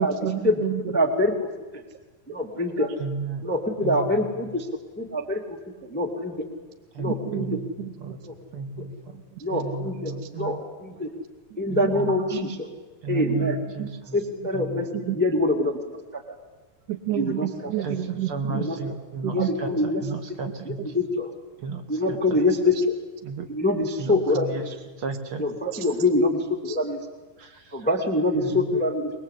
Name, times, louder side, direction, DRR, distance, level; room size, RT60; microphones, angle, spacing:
voice 1, 0.0-1.0 2.9-3.0 5.2-5.3 7.1-8.1 9.1-9.6 10.2-10.3 11.8-12.5 13.8-13.9 14.4-15.2 16.9-18.7 19.2-19.5 19.8-19.9 20.8-20.9 22.8-22.9 25.7-25.9 26.7-26.8, right 12 dB, 70° right, 7 dB, 2.1 m, -31 dB
voice 2, 0.9-1.3 2.3-2.9 3.4-4.7 5.0-5.4 5.8-6.4 7.0-7.5 8.3-8.4 9.4-11.1 11.6-12.7 13.1-13.6 14.1-15.8 16.1-16.2 17.1-17.5 18.5-18.8 19.3-20.0 20.9-21.3 21.9-22.7 23.5-24.5 25.4-27.0 27.7-29.1, left 2 dB, 5° left, 3 dB, 1.2 m, -24 dB
voice 3, 3.0-3.4 3.8-4.3 6.9-7.6 8.0-8.2 8.5-9.2 9.5-10.6 11.7-12.2 13.0-14.2 14.5-14.9 17.8-20.9 21.6-22.4 23.2-23.5 24.0-24.6 25.0-25.4 27.4-27.9 28.4-28.6, right 4 dB, 45° right, 7 dB, 2.1 m, -34 dB
24.0 x 21.0 x 8.3 m, 1.2 s
omnidirectional pair, 4.1 m